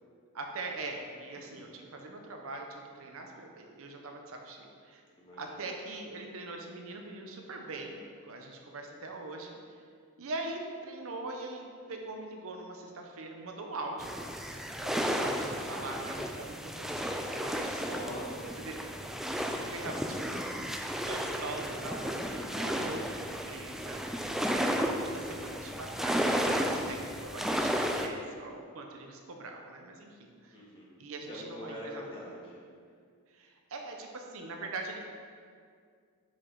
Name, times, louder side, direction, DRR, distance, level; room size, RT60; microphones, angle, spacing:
voice 1, 0.3-5.0 5.4-9.6 10.2-14.2 14.8-18.1 18.7-18.8 19.1-20.3 20.9-30.6 31.0-32.1 33.3-35.0, right 2 dB, 65° right, 2 dB, 0.8 m, -42 dB
voice 2, 1.3-1.7 5.2-5.6 17.6-18.6 30.5-30.9 31.3-32.6, equal, 25° left, -5 dB, 1.7 m, -44 dB
sound 1, 14.0-28.1, equal, ahead, 0.3 m, -33 dB
6.5 x 6.1 x 4.6 m, 2.1 s
head